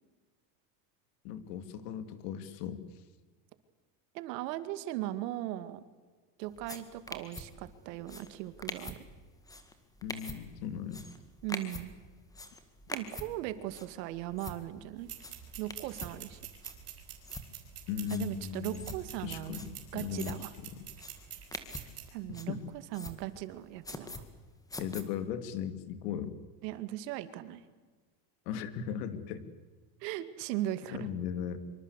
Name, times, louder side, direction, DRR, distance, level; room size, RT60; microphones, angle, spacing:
voice 1, 1.2-2.8 10.0-11.0 17.9-18.9 19.2-20.4 20.8-20.9 22.5-22.6 24.8-26.3 28.5-29.5 30.9-31.6, left 8 dB, 80° left, 11 dB, 2.9 m, -37 dB
voice 2, 4.1-5.8 6.4-9.0 11.4-11.9 12.9-15.1 15.6-16.4 18.1-19.6 19.9-20.5 22.1-22.6 22.9-24.2 26.6-27.6 30.0-31.1, right 14 dB, 85° right, 12 dB, 2.3 m, -38 dB
sound 1, 6.5-25.0, left 2 dB, 5° left, 1.8 m, -46 dB
sound 2, 15.0-22.1, right 10 dB, 30° right, 5.0 m, -47 dB
25.5 x 24.5 x 8.2 m, 1.4 s
cardioid pair, 170°, 48 cm